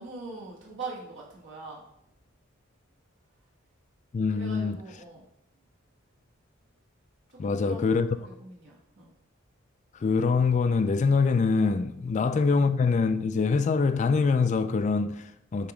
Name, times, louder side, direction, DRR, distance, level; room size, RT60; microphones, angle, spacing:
voice 1, 0.0-1.8 4.3-5.2 7.3-9.1 12.1-12.3, right 3 dB, 65° right, 1.5 m, -42 dB
voice 2, 4.1-4.8 7.4-8.1 9.9-15.7, left 4 dB, 35° left, 0.3 m, -24 dB
6.8 x 3.0 x 5.0 m
head